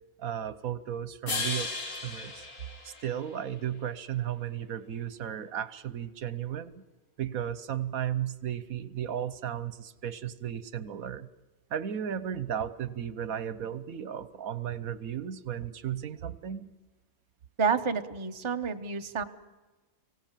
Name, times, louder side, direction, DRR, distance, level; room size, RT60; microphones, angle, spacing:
voice 1, 0.2-1.7 2.0-2.5 2.8-6.7 7.2-11.3 11.7-16.7, right 9 dB, 75° right, 15 dB, 1.3 m, -34 dB
sound 1, 1.3-3.6, left 3 dB, 85° left, 2.7 m, -36 dB
voice 2, 17.6-19.2, right 5 dB, 25° right, 6 dB, 0.9 m, -29 dB
25.0 x 17.0 x 7.4 m, 1.2 s
omnidirectional pair, 1.5 m